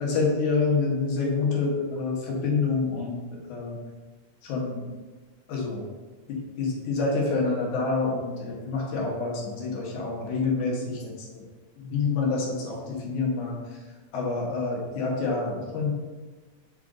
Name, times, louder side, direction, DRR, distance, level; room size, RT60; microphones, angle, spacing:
voice 1, 0.0-3.2 3.5-3.8 4.4-4.9 5.5-5.8 6.3-11.1 11.8-13.6 14.1-15.9, left 4 dB, 85° left, -2 dB, 2.7 m, -27 dB
7.3 x 3.9 x 3.7 m, 1.3 s
omnidirectional pair, 3.3 m